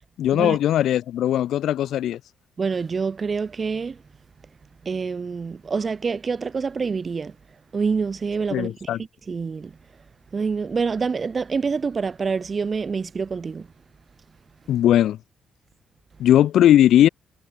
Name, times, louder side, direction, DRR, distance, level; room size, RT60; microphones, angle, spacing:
voice 1, 0.2-2.2 8.5-9.0 14.7-15.2 16.2-17.1, left 11 dB, 75° left, 1.1 m, -18 dB
voice 2, 2.6-4.0 4.8-7.3 7.7-8.9 9.3-9.7 10.3-13.7, right 5 dB, 35° right, 1.3 m, -26 dB
cardioid pair, 90°, 0 cm